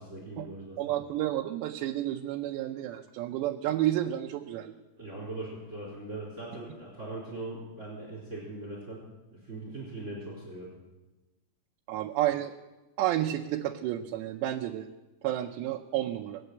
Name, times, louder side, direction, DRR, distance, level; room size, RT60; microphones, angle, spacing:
voice 1, 0.0-0.8 5.0-9.0 9.3-10.7, right 2 dB, 15° right, -4 dB, 4.2 m, -40 dB
voice 2, 0.8-4.7 11.9-12.5 13.0-14.9 15.2-16.4, right 13 dB, 90° right, 3 dB, 2.9 m, -31 dB
19.5 x 8.8 x 8.0 m, 1.1 s
omnidirectional pair, 4.8 m